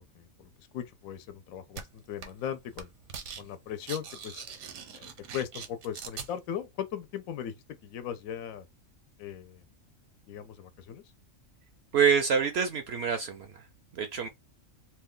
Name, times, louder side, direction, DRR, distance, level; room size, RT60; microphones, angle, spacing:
voice 1, 0.0-2.9 3.4-4.4 4.9-7.6 7.8-8.6 9.2-9.6 10.3-11.0, left 9 dB, 80° left, 1.0 m, -38 dB
sound 1, 1.8-1.9 2.2-2.5 2.7-3.4 3.7-6.3, right 6 dB, 85° right, 1.2 m, -41 dB
voice 2, 11.9-13.7 13.9-14.3, right 6 dB, 65° right, 0.7 m, -26 dB
2.7 x 2.3 x 3.6 m
omnidirectional pair, 1.4 m